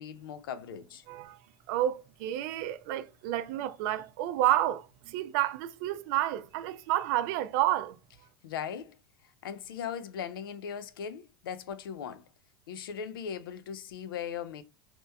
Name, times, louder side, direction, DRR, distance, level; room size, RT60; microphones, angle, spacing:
voice 1, 0.0-1.0 8.4-9.0 9.4-12.3 12.7-14.6, left 8 dB, 70° left, 0.5 m, -38 dB
voice 2, 1.1-1.4 1.7-8.0, right 14 dB, 60° right, 0.6 m, -30 dB
5.2 x 2.9 x 2.2 m
hypercardioid pair, 80°, 12 cm